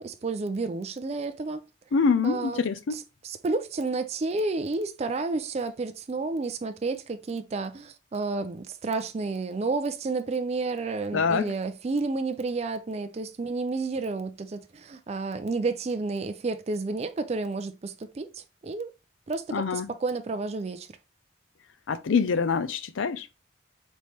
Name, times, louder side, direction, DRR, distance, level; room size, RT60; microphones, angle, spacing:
voice 1, 0.0-1.6 2.2-2.6 2.9-18.9 19.3-20.9, right 3 dB, 35° right, 0.4 m, -31 dB
voice 2, 1.9-3.0 11.1-11.5 19.5-19.9 21.9-23.3, left 5 dB, 85° left, 0.5 m, -25 dB
4.2 x 3.1 x 3.3 m
head